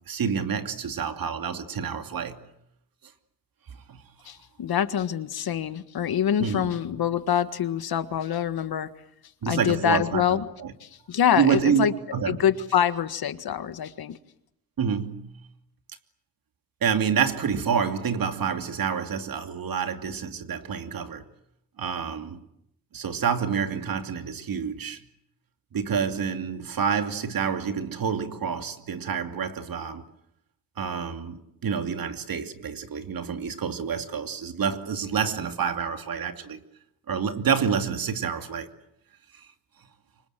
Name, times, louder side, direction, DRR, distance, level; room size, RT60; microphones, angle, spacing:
voice 1, 0.1-2.4 3.9-4.0 6.4-6.7 9.4-10.7 11.4-12.4 14.8-15.3 16.8-21.2 21.8-22.4 22.9-25.0 25.7-30.0 30.8-36.6 37.1-38.7, right 7 dB, 70° right, 2.7 m, -28 dB
voice 2, 4.3-8.9 9.5-10.5 10.8-11.9 12.3-14.2, left 9 dB, 80° left, 1.8 m, -25 dB
29.0 x 25.5 x 7.6 m
wide cardioid pair, 150°, 36 cm